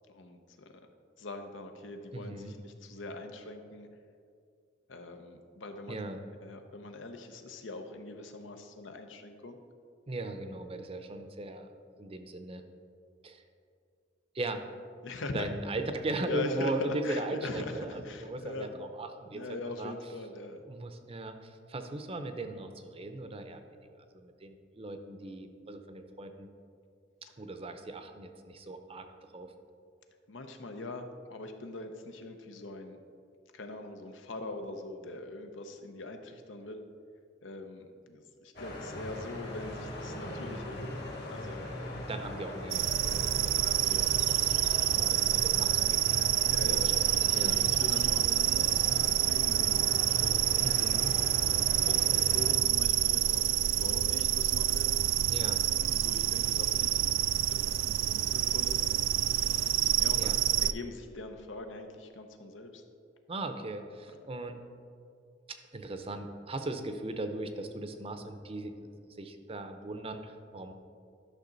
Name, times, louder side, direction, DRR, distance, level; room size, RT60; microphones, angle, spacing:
voice 1, 0.1-0.9 1.2-3.9 4.9-6.0 6.4-9.6 15.0-15.5 16.2-18.8 19.3-20.6 30.3-33.0 33.5-36.8 37.4-40.9 41.3-41.7 46.4-46.9 47.2-51.2 51.8-54.9 55.7-57.1 57.5-59.1 60.0-60.3 60.6-62.8, left 2 dB, 90° left, 6 dB, 0.8 m, -42 dB
voice 2, 2.1-2.6 5.9-6.2 10.1-11.7 12.0-12.6 13.2-13.4 14.3-14.6 15.3-19.9 20.7-23.6 24.0-26.5 27.4-29.1 29.3-29.5 42.1-46.8 47.3-47.6 50.6-51.1 55.3-55.6 60.1-60.4 63.3-64.6 65.5-70.7, right 2 dB, 30° right, 7 dB, 0.6 m, -38 dB
sound 1, 38.6-52.5, left 1 dB, 60° left, 1.6 m, -40 dB
sound 2, 42.7-60.7, right 14 dB, 90° right, 0.3 m, -27 dB
11.5 x 6.0 x 4.0 m, 2.3 s
head